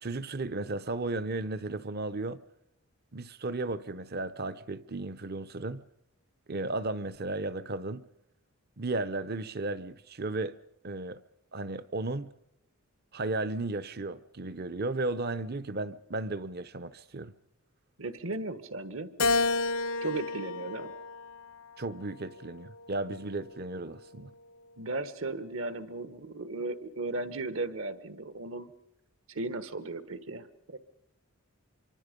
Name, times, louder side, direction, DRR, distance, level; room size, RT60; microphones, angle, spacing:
voice 1, 0.0-2.4 3.1-5.8 6.5-8.1 8.8-10.5 10.8-11.2 11.5-12.3 13.1-17.3 21.8-24.3, right 2 dB, 45° right, 0.8 m, -34 dB
voice 2, 18.0-19.1 20.0-20.9 24.8-28.7 29.3-30.8, right 2 dB, 65° right, 1.5 m, -36 dB
Keyboard (musical), 19.2-21.7 22.3-23.5, left 3 dB, 70° left, 0.8 m, -31 dB
26.0 x 24.0 x 5.3 m
head